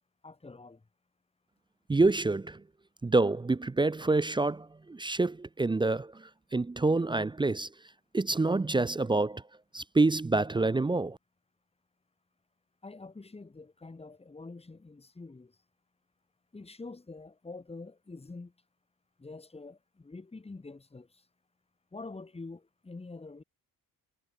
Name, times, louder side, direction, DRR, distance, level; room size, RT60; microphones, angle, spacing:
voice 1, 0.2-0.8 12.8-15.5 16.5-18.5 19.2-21.2 21.9-23.4, left 3 dB, 15° left, 7.8 m, -46 dB
voice 2, 1.9-2.6 3.0-7.7 8.1-9.4 9.7-11.2, right 3 dB, 10° right, 0.7 m, -27 dB
cardioid pair, 155°, 37 cm